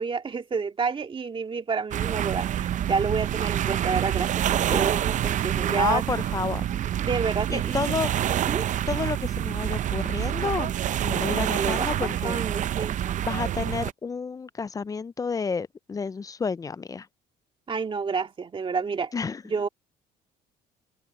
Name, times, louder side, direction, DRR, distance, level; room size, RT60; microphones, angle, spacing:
voice 1, 0.0-6.0 7.0-7.9 8.3-8.7 11.3-13.0 17.7-19.1 19.5-19.7, right 5 dB, 30° right, 2.1 m, -29 dB
sound 1, 1.9-13.9, right 11 dB, 50° right, 0.5 m, -27 dB
voice 2, 5.4-6.7 7.5-8.1 8.9-10.7 11.0-12.4 13.2-17.1 19.1-19.4, left 5 dB, 20° left, 0.4 m, -30 dB
cardioid pair, 110°, 17 cm